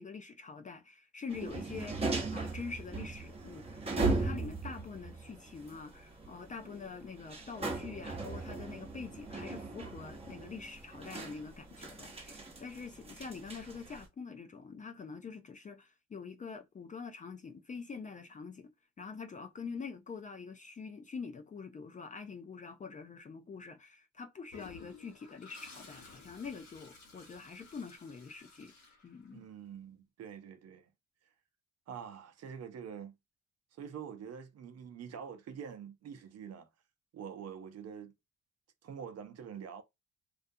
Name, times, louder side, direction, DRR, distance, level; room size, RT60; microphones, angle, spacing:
voice 1, 0.0-18.7 19.0-28.7 29.0-29.4, left 5 dB, 25° left, 0.4 m, -45 dB
sound 1, 1.3-14.1, right 3 dB, 20° right, 0.9 m, -38 dB
Toilet flush, 24.5-29.6, left 4 dB, 65° left, 1.0 m, -55 dB
voice 2, 29.3-30.9 31.9-33.1 33.8-36.7 37.1-38.1 38.8-39.8, right 7 dB, 55° right, 0.6 m, -45 dB
2.4 x 2.2 x 2.6 m
cardioid pair, 90°, 30 cm